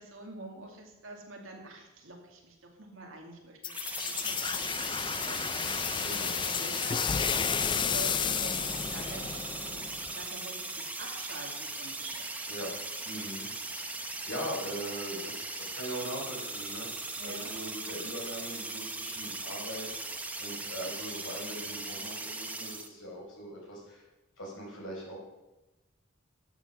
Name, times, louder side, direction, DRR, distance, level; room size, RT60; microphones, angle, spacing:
voice 1, 0.0-4.7 5.0-9.8 10.1-12.5 17.2-17.5, right 2 dB, 65° right, 1 dB, 2.4 m, -46 dB
sound 1, 3.6-10.2, left 7 dB, 20° left, 0.3 m, -32 dB
sound 2, 3.7-22.9, right 2 dB, 5° right, 0.7 m, -39 dB
voice 2, 6.0-6.4 12.5-13.5 13.8-24.0 24.4-25.2, right 1 dB, 65° left, -2 dB, 4.9 m, -41 dB
Clapping, 11.0-13.3, right 2 dB, 25° right, 4.0 m, -56 dB
12.0 x 8.1 x 5.8 m, 1.0 s
head